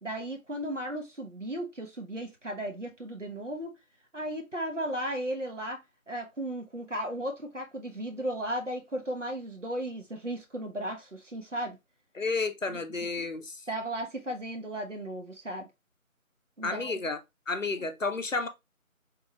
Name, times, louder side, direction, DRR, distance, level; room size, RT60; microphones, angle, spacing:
voice 1, 0.0-3.7 4.1-5.8 6.1-11.8 12.7-12.8 13.2-13.3 13.7-15.7 16.6-17.0 17.8-17.9, right 1 dB, 60° right, 0.9 m, -35 dB
voice 2, 12.2-13.6 16.6-17.2 17.5-18.5, left 3 dB, 65° left, 0.6 m, -31 dB
3.6 x 2.3 x 3.0 m
figure-of-eight pair, 180°, 43 cm